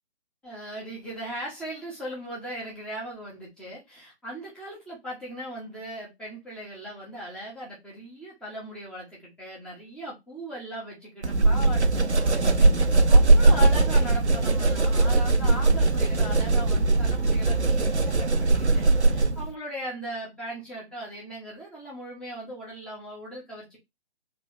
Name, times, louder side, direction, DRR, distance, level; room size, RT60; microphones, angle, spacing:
voice 1, 0.4-23.8, equal, 5° left, 1.2 m, -38 dB
sound 1, 11.2-19.5, right 3 dB, 90° right, 0.7 m, -20 dB
3.3 x 3.3 x 3.9 m
figure-of-eight pair, 135°, 33 cm